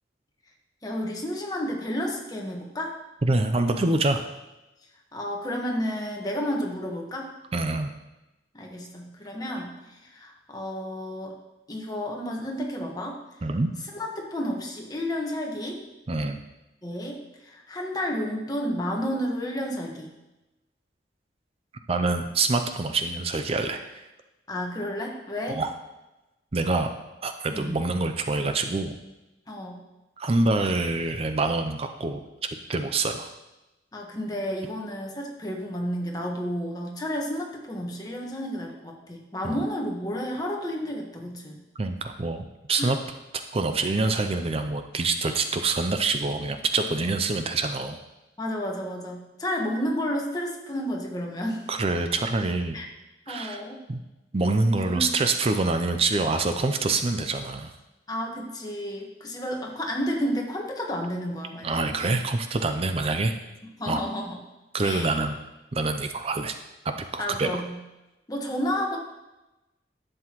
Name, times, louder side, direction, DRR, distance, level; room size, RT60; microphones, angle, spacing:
voice 1, 0.8-3.0 5.1-7.3 8.5-11.3 11.7-13.2 13.9-15.8 16.8-20.1 24.5-25.6 27.5-27.7 29.5-29.8 33.9-41.6 42.8-42.9 48.4-51.7 52.7-52.9 53.3-53.8 54.8-55.2 58.1-62.1 63.8-64.4 64.8-65.1 67.2-67.8 68.3-69.0, equal, 20° left, 0 dB, 1.3 m, -31 dB
voice 2, 3.2-4.2 7.5-7.9 13.4-13.7 16.1-16.4 21.9-24.0 25.5-25.7 26.5-26.9 27.2-28.9 30.2-32.2 32.7-33.3 39.4-39.6 41.8-43.0 43.5-48.0 51.7-52.8 53.3-53.6 53.9-54.0 54.3-57.7 61.6-63.4 63.9-64.0 64.7-65.4 65.7-66.6 66.8-67.6, right 3 dB, 35° right, 7 dB, 0.5 m, -26 dB
11.5 x 7.7 x 3.0 m, 1.0 s
head